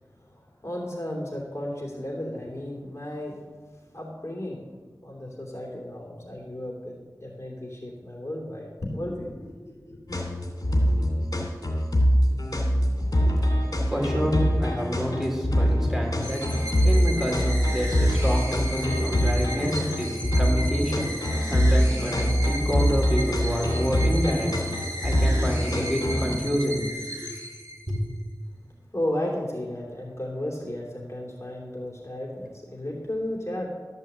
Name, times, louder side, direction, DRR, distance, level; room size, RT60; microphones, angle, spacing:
voice 1, 0.2-3.4 3.7-4.6 5.0-10.2 28.9-33.7, left 1 dB, 40° left, -2 dB, 2.9 m, -34 dB
sound 1, 10.1-26.4, equal, 60° left, 2.6 m, -24 dB
voice 2, 13.9-24.5 25.0-26.8 27.2-27.3 27.9-28.0, equal, 5° right, -1 dB, 3.5 m, -28 dB
sound 2, 16.2-28.1, equal, 40° right, 3.3 m, -36 dB
13.0 x 5.5 x 8.1 m, 1.4 s
wide cardioid pair, 40°, 7 cm